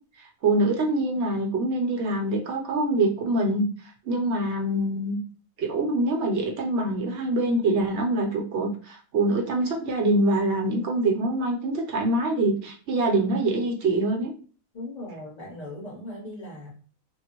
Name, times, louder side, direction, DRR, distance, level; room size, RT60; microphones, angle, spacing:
voice 1, 0.4-3.7 4.0-5.2 5.6-14.3, right 2 dB, 60° right, 1 dB, 0.9 m, -24 dB
voice 2, 14.7-16.7, left 1 dB, 35° left, -5 dB, 0.9 m, -38 dB
3.6 x 2.1 x 2.9 m, 0.41 s
omnidirectional pair, 1.5 m